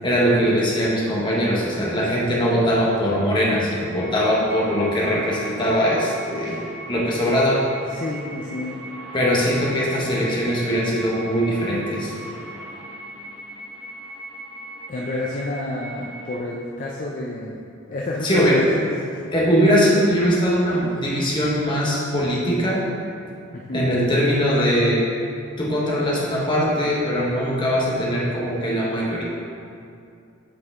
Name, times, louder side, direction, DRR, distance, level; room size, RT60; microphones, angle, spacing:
voice 1, 0.0-6.6 6.9-7.6 9.1-12.1 18.2-18.6 19.3-22.8 23.7-25.0 25.6-29.2, equal, 20° left, -5 dB, 1.2 m, -21 dB
sound 1, 4.0-16.4, right 1 dB, 10° right, 1.2 m, -39 dB
voice 2, 7.9-8.8 14.9-17.6 17.9-18.9 23.5-23.9, left 2 dB, 40° left, -3 dB, 0.5 m, -29 dB
7.7 x 4.6 x 3.6 m, 2.5 s
head